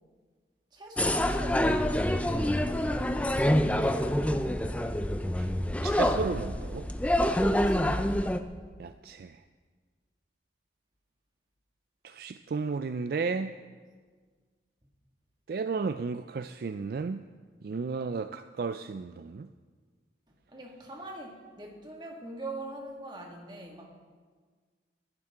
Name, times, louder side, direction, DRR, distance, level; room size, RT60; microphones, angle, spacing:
voice 1, 0.7-2.4 3.7-4.6 7.4-7.9 20.5-23.9, right 1 dB, 25° right, 0 dB, 2.0 m, -43 dB
sound 1, 1.0-8.4, left 1 dB, 10° left, 0.4 m, -26 dB
voice 2, 5.8-6.9 8.8-9.4 12.0-13.5 15.5-17.2 17.6-19.5, right 4 dB, 55° right, 10 dB, 0.3 m, -33 dB
19.0 x 11.5 x 3.8 m, 1.5 s
head